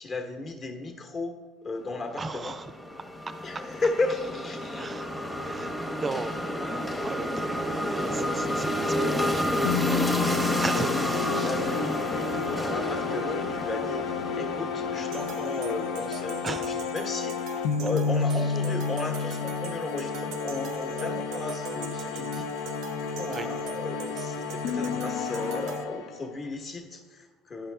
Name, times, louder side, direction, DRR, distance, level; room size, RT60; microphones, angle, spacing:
voice 1, 0.0-2.5 3.4-5.1 7.4-7.6 10.2-27.7, left 3 dB, 35° left, 4 dB, 1.1 m, -35 dB
voice 2, 2.2-2.7 4.8-5.1 5.5-9.9 10.3-10.9 11.3-11.5 16.4-16.7 23.3-23.5, right 3 dB, 20° right, 11 dB, 0.5 m, -36 dB
sound 1, 2.3-16.6, equal, 5° left, 0.9 m, -30 dB
sound 2, 9.6-26.4, left 6 dB, 75° left, 0.5 m, -31 dB
sound 3, 15.1-25.8, right 7 dB, 65° right, 0.5 m, -43 dB
9.9 x 5.6 x 3.3 m, 1.3 s
cardioid pair, 120°, 0 cm